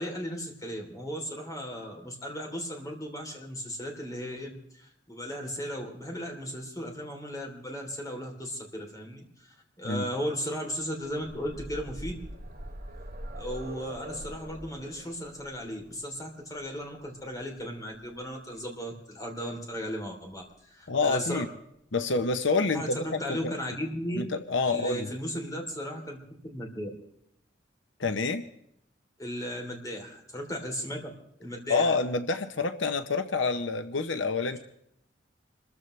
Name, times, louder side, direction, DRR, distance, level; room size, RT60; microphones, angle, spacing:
voice 1, 0.0-9.2 9.8-12.2 13.4-21.4 22.7-24.3 24.6-26.2 26.4-26.9 29.2-31.1 31.4-32.0 34.5-34.6, equal, 20° left, 1 dB, 3.4 m, -36 dB
sound 1, 10.8-18.6 19.8-19.9 20.2-20.3, right 1 dB, 50° right, 2.7 m, -44 dB
voice 2, 20.9-21.5 21.9-23.5 24.2-25.1 28.0-28.4 31.7-34.6, left 3 dB, 85° left, 9 dB, 0.9 m, -27 dB
26.5 x 14.5 x 3.3 m, 0.74 s
head